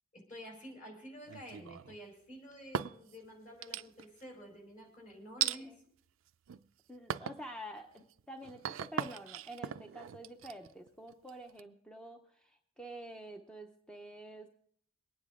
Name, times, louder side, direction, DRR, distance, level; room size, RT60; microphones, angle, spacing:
voice 1, 0.1-5.7, equal, 40° left, 1 dB, 4.6 m, -50 dB
sound 1, 1.3-2.0 2.5-3.2 3.6-4.2 5.4-5.6 6.3-6.7 7.1-7.4 7.9-11.6, right 9 dB, 75° right, 0.4 m, -39 dB
voice 2, 5.4-5.8 6.9-14.5, right 1 dB, 5° left, 4 dB, 0.7 m, -48 dB
23.0 x 9.6 x 3.6 m, 0.62 s
head